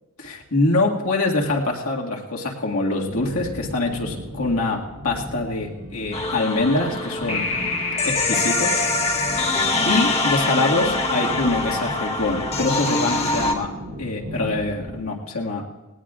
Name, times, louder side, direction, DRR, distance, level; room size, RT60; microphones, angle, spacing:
voice 1, 0.2-7.4 8.0-8.9 9.2-9.5 9.9-13.7 14.0-15.6, left 2 dB, 75° left, -1 dB, 2.0 m, -24 dB
sound 1, 3.1-15.0, equal, 75° right, 3.7 m, -36 dB
sound 2, 6.1-13.5, left 3 dB, 30° left, 1.2 m, -23 dB
19.0 x 18.5 x 2.5 m, 1.1 s
head